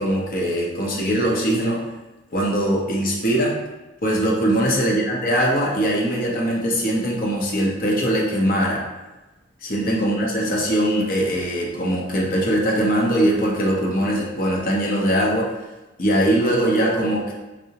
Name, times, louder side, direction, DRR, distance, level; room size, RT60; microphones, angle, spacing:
voice 1, 0.0-1.8 2.3-3.6 4.0-8.8 9.6-15.5 16.0-17.3, right 1 dB, 45° left, -2 dB, 0.7 m, -21 dB
4.7 x 2.0 x 2.7 m, 1.1 s
head